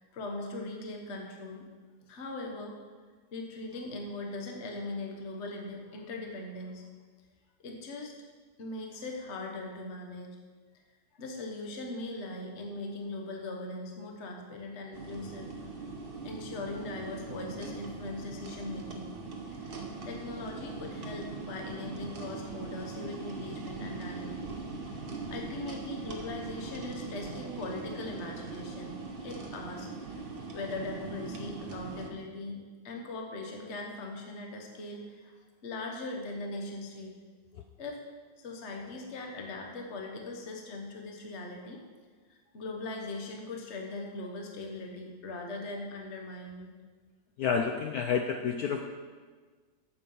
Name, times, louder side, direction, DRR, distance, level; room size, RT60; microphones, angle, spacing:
voice 1, 0.0-1.6 2.1-2.8 3.3-6.8 7.6-8.1 8.6-10.4 11.1-15.5 16.2-19.1 19.6-19.8 20.0-24.3 24.9-35.3 35.6-37.1 37.8-38.0 38.4-41.9 42.3-46.7, left 2 dB, 40° left, 1 dB, 1.3 m, -40 dB
sound 1, 14.9-32.1, right 4 dB, 40° right, 0.9 m, -41 dB
voice 2, 47.4-48.8, left 6 dB, 70° left, 4 dB, 0.9 m, -29 dB
8.7 x 7.3 x 5.6 m, 1.4 s
omnidirectional pair, 2.1 m